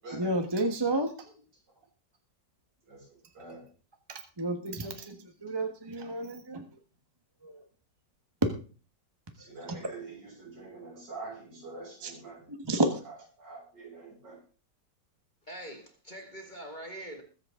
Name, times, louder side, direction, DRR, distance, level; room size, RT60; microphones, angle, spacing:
voice 1, 0.1-1.1 4.1-6.6 7.4-7.5 9.7-9.8 12.0-12.1 12.5-13.0, right 1 dB, 15° right, 5 dB, 1.3 m, -31 dB
voice 2, 2.8-3.7 9.3-12.5 13.0-14.4, right 3 dB, 75° right, -3 dB, 7.7 m, -45 dB
voice 3, 15.5-17.2, right 1 dB, 25° left, 2 dB, 2.3 m, -43 dB
21.5 x 7.8 x 3.8 m, 0.37 s
omnidirectional pair, 1.9 m